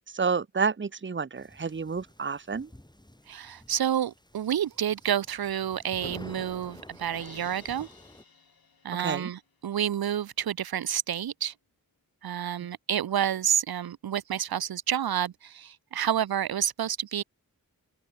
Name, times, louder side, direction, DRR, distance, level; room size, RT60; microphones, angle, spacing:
voice 1, 0.1-2.7 9.0-9.3, right 5 dB, 30° right, 0.8 m, -29 dB
sound 1, 1.4-8.2, left 1 dB, 10° left, 8.0 m, -49 dB
voice 2, 3.3-7.9 8.8-11.5 12.2-17.2, right 10 dB, 80° right, 0.6 m, -29 dB
Crash cymbal, 7.1-9.4, left 5 dB, 80° left, 4.4 m, -53 dB
wide cardioid pair, 70°, 36 cm